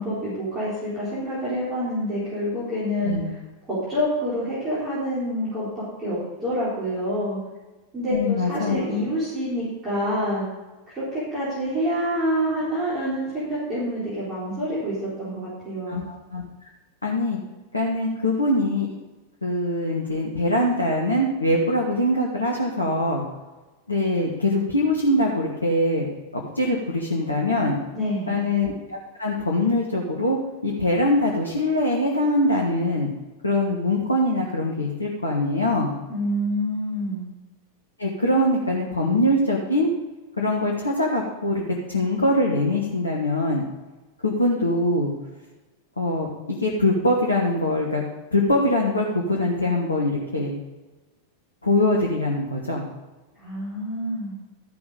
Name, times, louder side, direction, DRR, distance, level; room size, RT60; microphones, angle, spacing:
voice 1, 0.0-3.2 3.7-7.4 7.9-10.5 10.9-16.0 27.9-28.5 36.1-37.2 53.3-54.3, equal, 25° right, -10 dB, 4.2 m, -27 dB
voice 2, 8.1-9.0 15.9-16.4 17.0-17.4 17.7-18.9 19.4-23.2 23.9-26.1 26.3-27.8 28.3-30.4 30.6-33.1 33.4-35.9 38.0-39.9 40.4-41.6 41.9-43.6 44.2-45.1 46.0-48.0 48.3-50.5 51.6-52.8, left 1 dB, 80° left, -1 dB, 1.4 m, -23 dB
13.5 x 6.0 x 5.1 m, 1.2 s
figure-of-eight pair, 90°, 0 cm